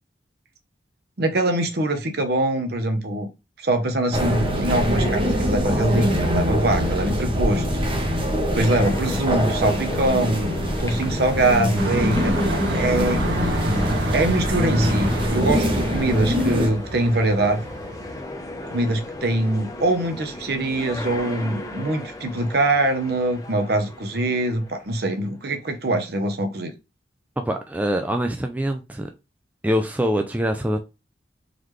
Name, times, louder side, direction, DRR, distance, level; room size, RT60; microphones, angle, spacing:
voice 1, 1.2-3.3 3.6-7.7 8.5-10.5 10.8-13.2 14.1-17.6 18.7-26.7, right 2 dB, 55° right, 0.8 m, -23 dB
sound 1, 4.1-16.7, equal, 30° right, 0.8 m, -24 dB
sound 2, 8.6-25.2, left 1 dB, 20° left, 0.7 m, -36 dB
sound 3, 11.8-18.2, right 1 dB, 85° right, 1.3 m, -29 dB
voice 2, 27.4-29.1 29.6-30.8, equal, 10° right, 0.3 m, -24 dB
3.9 x 3.2 x 3.1 m
head